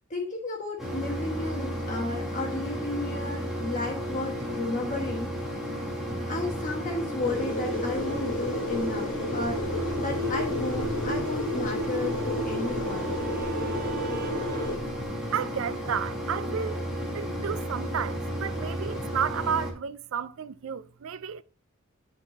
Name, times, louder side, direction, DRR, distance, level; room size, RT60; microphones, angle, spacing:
voice 1, 0.1-5.3 6.3-9.6 10.0-13.1, left 2 dB, 35° left, 1.2 m, -33 dB
Mechanisms, 0.8-19.7, equal, 5° right, 2.2 m, -33 dB
sound 1, 7.2-14.8, left 1 dB, 65° left, 2.1 m, -32 dB
Guitar, 9.2-14.7, right 6 dB, 55° right, 1.7 m, -44 dB
voice 2, 15.3-16.8 17.1-21.4, right 7 dB, 70° right, 0.4 m, -32 dB
11.0 x 4.2 x 4.1 m
head